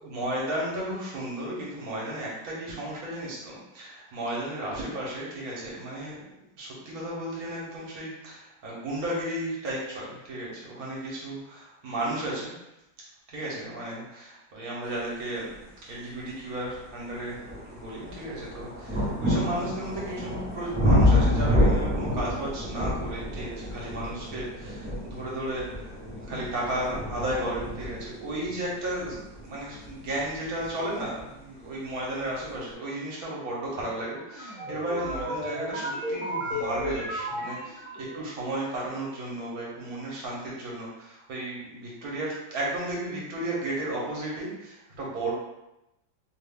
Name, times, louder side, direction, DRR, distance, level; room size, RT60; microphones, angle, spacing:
voice 1, 0.0-6.2 6.6-12.5 13.3-17.3 17.7-26.0 26.3-45.3, right 1 dB, 55° right, -5 dB, 1.3 m, -34 dB
sound 1, 16.0-16.1 16.6-31.3 32.2-32.3, left 1 dB, 15° right, 0.3 m, -28 dB
sound 2, 34.1-38.3, equal, 30° right, 1.1 m, -34 dB
3.1 x 2.4 x 3.5 m, 0.90 s
omnidirectional pair, 2.1 m